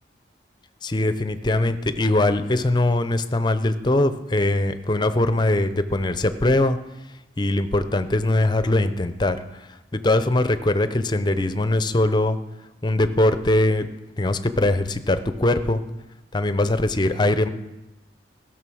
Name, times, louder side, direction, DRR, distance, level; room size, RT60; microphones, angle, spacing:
voice 1, 0.8-6.8 7.4-9.4 9.9-12.4 12.8-13.9 14.2-15.8 16.3-17.5, left 2 dB, 25° left, 11 dB, 0.6 m, -21 dB
16.5 x 6.2 x 6.2 m, 1.0 s
head